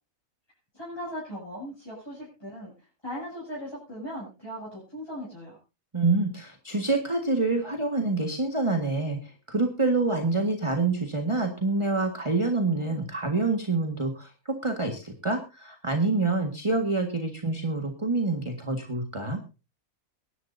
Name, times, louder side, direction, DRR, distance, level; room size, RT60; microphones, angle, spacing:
voice 1, 0.7-2.7 3.0-5.6, equal, 15° left, -6 dB, 7.9 m, -38 dB
voice 2, 5.9-19.4, right 3 dB, 20° right, 4 dB, 1.6 m, -27 dB
23.5 x 11.5 x 2.7 m, 0.30 s
omnidirectional pair, 1.5 m